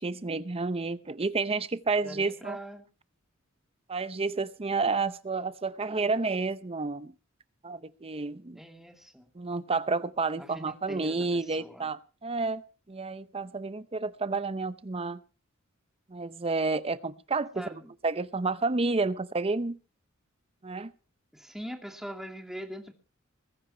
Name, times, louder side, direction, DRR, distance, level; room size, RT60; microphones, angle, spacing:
voice 1, 0.0-2.6 3.9-7.1 7.6-8.6 9.4-12.6 12.9-15.2 16.1-19.8 20.6-20.9, right 3 dB, 30° right, 0.7 m, -30 dB
voice 2, 2.0-2.8 8.5-9.3 10.4-11.9 17.5-17.9 21.3-22.9, equal, ahead, 2.5 m, -42 dB
21.0 x 10.5 x 4.4 m
head